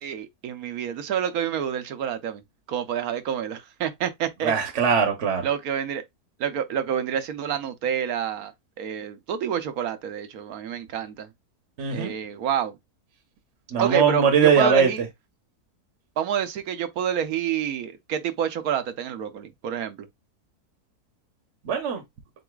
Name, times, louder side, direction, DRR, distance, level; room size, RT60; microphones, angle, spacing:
voice 1, 0.0-2.4 2.7-4.5 5.4-6.0 6.4-8.5 8.8-11.3 11.9-12.8 13.8-15.0 16.2-20.1, right 9 dB, 70° right, 1.2 m, -28 dB
voice 2, 4.4-5.4 11.8-12.1 13.7-14.9 21.6-22.0, right 6 dB, 50° right, 1.2 m, -20 dB
7.7 x 2.6 x 2.4 m
omnidirectional pair, 1.6 m